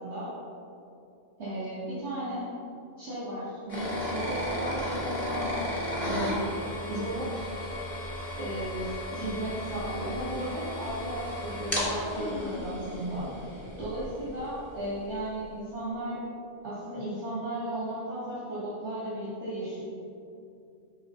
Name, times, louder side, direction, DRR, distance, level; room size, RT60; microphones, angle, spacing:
voice 1, 0.0-0.3 1.4-2.5 3.0-5.6 6.0-6.6 6.9-7.5 8.4-16.2 16.6-19.8, right 1 dB, 90° right, -11 dB, 2.6 m, -35 dB
sound 1, 3.7-14.5, left 1 dB, 30° left, 2.0 m, -34 dB
9.9 x 6.0 x 4.0 m, 2.6 s
omnidirectional pair, 1.1 m